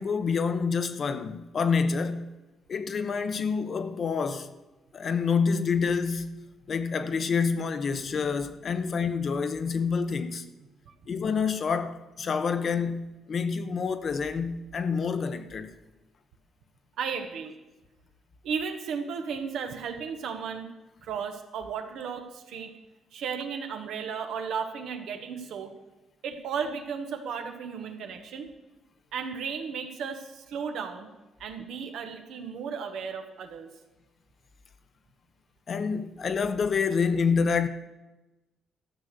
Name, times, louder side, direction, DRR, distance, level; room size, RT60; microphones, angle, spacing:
voice 1, 0.0-2.3 2.7-4.5 4.9-10.4 11.1-15.7 35.7-37.7, left 5 dB, 50° left, 0.8 m, -28 dB
voice 2, 17.0-17.5 18.4-20.7 21.0-22.7 23.1-25.7 26.2-28.5 29.1-31.1 31.4-33.7, right 6 dB, 80° right, 1.2 m, -34 dB
13.0 x 6.2 x 6.7 m
cardioid pair, 90°, 0 cm